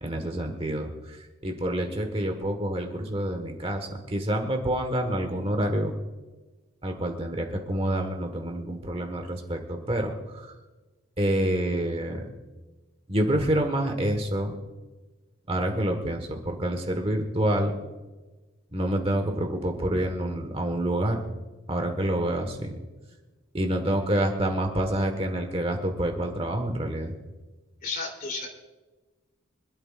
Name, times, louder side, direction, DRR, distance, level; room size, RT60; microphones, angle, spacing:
voice 1, 0.0-5.9 6.8-10.5 11.2-12.2 13.1-14.5 15.5-17.7 18.7-21.2 21.7-22.7 23.5-27.1, right 1 dB, 30° right, 4 dB, 1.5 m, -27 dB
voice 2, 27.8-28.5, left 4 dB, 40° left, 1 dB, 3.3 m, -32 dB
25.5 x 12.0 x 2.5 m, 1.2 s
head